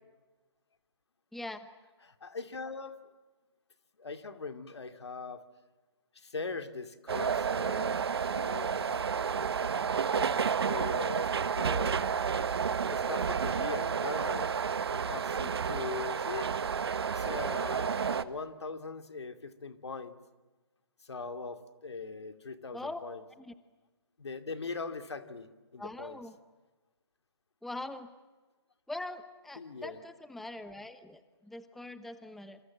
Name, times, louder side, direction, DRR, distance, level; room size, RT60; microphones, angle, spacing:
voice 1, 1.3-1.7 22.7-23.0 23.4-23.5 25.8-26.3 27.6-28.1 28.9-32.6, left 2 dB, ahead, 12 dB, 0.9 m, -42 dB
voice 2, 2.0-3.0 4.0-5.4 6.1-10.4 10.7-12.2 12.9-14.5 14.9-16.5 17.1-20.2 21.0-23.2 24.2-26.2 29.6-30.0, left 4 dB, 75° left, 9 dB, 2.5 m, -41 dB
sound 1, 7.1-18.2, right 6 dB, 65° right, 1.3 m, -31 dB
28.0 x 27.5 x 7.5 m, 1.2 s
figure-of-eight pair, 140°, 14 cm